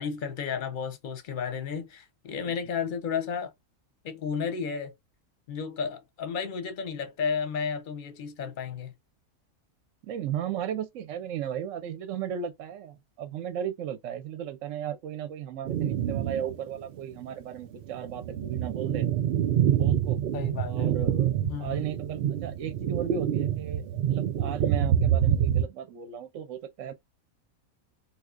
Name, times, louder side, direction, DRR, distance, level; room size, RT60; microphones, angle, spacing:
voice 1, 0.0-3.5 4.0-4.9 5.5-8.9 20.3-20.7 21.4-21.8, left 6 dB, 45° left, 0.8 m, -32 dB
voice 2, 10.0-19.1 19.7-20.2 20.6-26.9, right 9 dB, 65° right, 0.9 m, -35 dB
sound 1, 15.7-16.6 17.0-17.1 17.7-25.6, right 10 dB, 85° right, 0.5 m, -26 dB
3.6 x 2.9 x 2.4 m
omnidirectional pair, 1.5 m